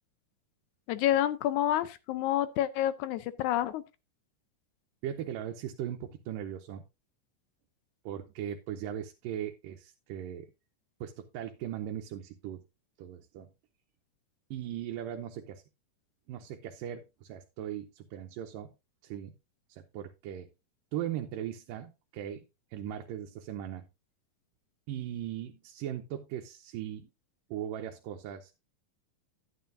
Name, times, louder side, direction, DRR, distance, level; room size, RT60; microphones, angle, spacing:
voice 1, 0.9-3.8, left 12 dB, 75° left, 1.9 m, -28 dB
voice 2, 5.0-6.8 8.1-10.5 11.0-12.7 13.0-13.5 14.5-15.6 16.3-18.7 19.0-19.3 19.7-20.5 20.9-22.4 22.7-23.9 24.9-27.1 27.5-28.6, right 10 dB, 90° right, 2.5 m, -39 dB
11.5 x 9.5 x 2.6 m
omnidirectional pair, 3.8 m